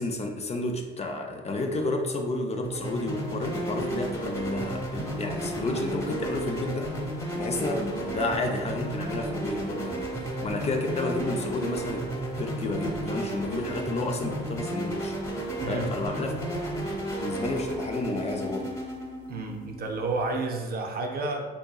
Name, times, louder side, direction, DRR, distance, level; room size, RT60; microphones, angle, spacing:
voice 1, 0.0-6.9 7.3-12.1 12.4-15.1 15.7-16.3 17.2-18.8, left 2 dB, 35° left, 3 dB, 0.4 m, -31 dB
sound 1, 2.6-20.4, right 1 dB, 15° left, 0.9 m, -33 dB
voice 2, 15.6-15.9 19.3-21.4, right 3 dB, 50° right, 3 dB, 0.5 m, -31 dB
3.7 x 2.8 x 2.3 m, 1.4 s
cardioid pair, 90°, 20 cm